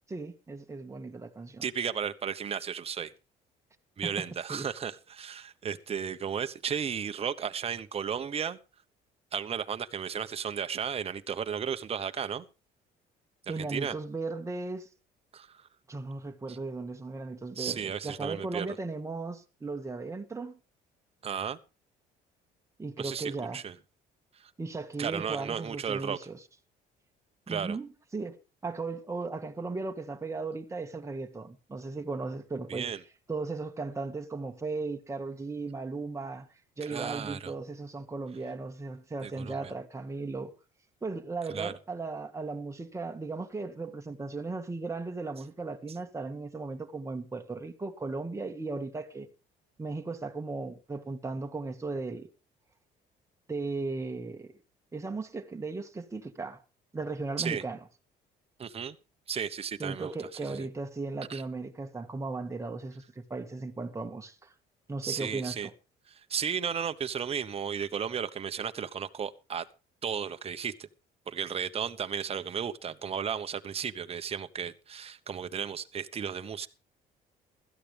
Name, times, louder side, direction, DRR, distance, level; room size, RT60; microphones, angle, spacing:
voice 1, 0.1-1.7 4.0-4.7 13.5-14.9 15.9-20.6 22.8-23.6 24.6-26.4 27.5-28.4 28.6-32.9 33.3-36.5 36.8-40.5 41.0-49.3 49.8-52.3 53.5-54.5 54.9-56.6 56.9-57.8 59.8-64.5 64.9-65.7, right 3 dB, 15° right, 1.9 m, -36 dB
voice 2, 1.6-3.1 4.0-8.6 9.3-12.5 13.5-13.9 15.3-15.7 16.5-16.6 17.6-18.7 21.2-21.6 23.0-23.7 24.4-24.5 25.0-26.2 27.5-27.8 32.7-33.0 36.8-37.5 39.2-39.7 41.5-41.7 57.4-57.6 58.6-59.0 59.3-60.7 61.3-61.4 65.0-65.7 66.2-69.6 70.0-70.9 71.3-76.7, right 7 dB, 35° right, 1.1 m, -34 dB
16.0 x 13.5 x 3.5 m
cardioid pair, 110°, 17 cm